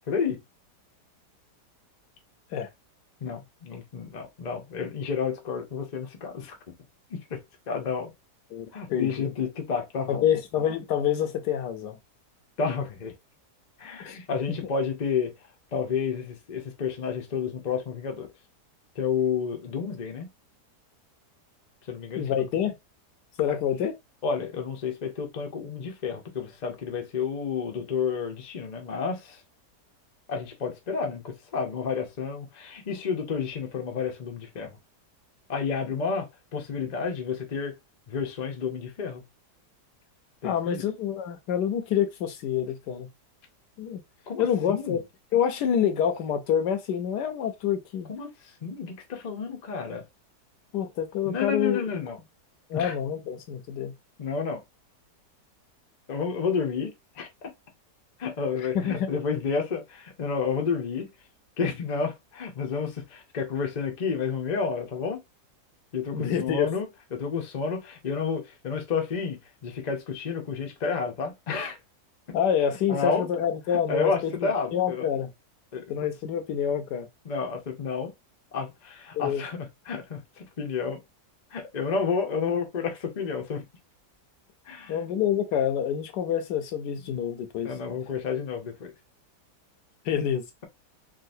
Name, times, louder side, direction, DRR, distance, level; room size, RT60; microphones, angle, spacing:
voice 1, 0.1-0.4 3.2-6.6 7.1-7.4 7.7-8.1 8.7-10.3 12.6-13.1 13.8-15.3 15.7-18.3 18.9-20.3 21.9-22.5 24.2-29.4 30.3-34.8 35.5-37.7 38.1-39.2 40.4-40.8 44.3-45.0 48.1-50.0 51.2-52.2 52.7-53.0 54.2-54.6 56.1-57.5 58.2-61.1 61.6-65.2 65.9-71.8 72.9-73.3 73.9-75.1 75.7-76.1 77.2-78.1 78.5-81.0 81.5-83.6 84.7-85.0 87.0-87.2 87.6-88.9, left 5 dB, 50° left, 0.5 m, -30 dB
voice 2, 8.5-9.3 10.1-12.0 14.0-14.2 22.2-22.7 23.4-23.9 40.4-43.1 43.8-44.0 44.4-45.0 45.3-48.1 50.7-52.0 52.7-53.9 58.7-59.1 66.1-66.7 72.3-75.3 75.9-77.1 79.1-79.4 84.9-87.7 90.1-90.4, left 9 dB, 80° left, 1.2 m, -27 dB
3.7 x 2.4 x 2.6 m
omnidirectional pair, 1.8 m